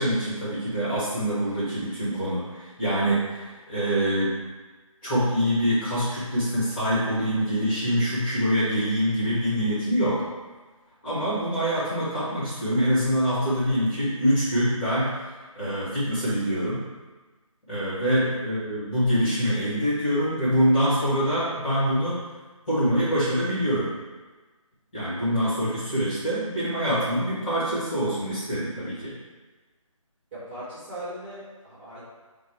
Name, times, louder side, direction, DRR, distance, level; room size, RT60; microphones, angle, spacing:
voice 1, 0.0-4.4 5.0-10.2 11.0-15.2 15.5-16.8 17.7-22.2 22.7-23.9 24.9-29.1, equal, 15° left, -11 dB, 1.4 m, -25 dB
voice 2, 30.3-32.0, right 1 dB, 20° right, -12 dB, 1.3 m, -39 dB
4.9 x 2.2 x 4.6 m, 1.3 s
figure-of-eight pair, 160°, 18 cm